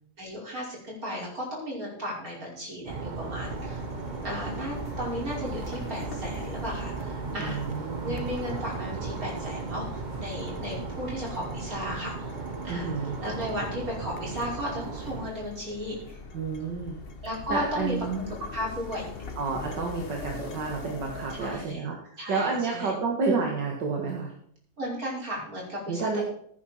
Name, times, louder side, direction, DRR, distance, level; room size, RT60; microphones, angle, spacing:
voice 1, 0.2-3.8 4.2-7.6 8.0-12.3 12.6-12.9 13.2-16.2 17.2-18.2 18.5-19.1 21.4-21.8 22.2-22.9 24.8-26.2, equal, 50° right, -4 dB, 5.9 m, -35 dB
sound 1, 2.9-15.3, right 4 dB, 35° right, 0.8 m, -36 dB
sound 2, 3.4-21.7, left 3 dB, 40° left, 1.1 m, -42 dB
voice 2, 7.4-8.3 12.7-13.2 16.3-17.0 17.5-18.3 19.4-24.3 25.9-26.2, right 4 dB, 75° right, 0 dB, 2.3 m, -30 dB
16.0 x 10.0 x 4.5 m, 0.67 s
omnidirectional pair, 1.9 m